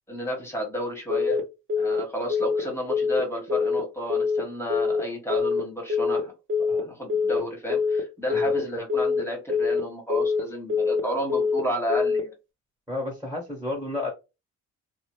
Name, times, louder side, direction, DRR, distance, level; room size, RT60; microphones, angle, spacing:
voice 1, 0.1-1.4 1.8-6.3 6.6-12.3, equal, 10° left, 1 dB, 1.3 m, -32 dB
Telephone, 1.1-1.4 1.7-2.0 2.3-2.6 2.9-3.2 3.5-3.8 4.1-4.4 4.7-5.0 5.3-5.6 5.9-6.2 6.5-6.8 7.1-7.4 7.7-8.0 8.3-8.6 8.9-9.2 9.5-9.8 10.1-10.4 10.7-11.0 11.3-11.6 11.9-12.2, left 5 dB, 40° right, 0.7 m, -24 dB
voice 2, 12.9-14.1, left 2 dB, 10° right, -2 dB, 1.4 m, -31 dB
2.8 x 2.1 x 3.0 m, 0.27 s
cardioid pair, 90°, 30 cm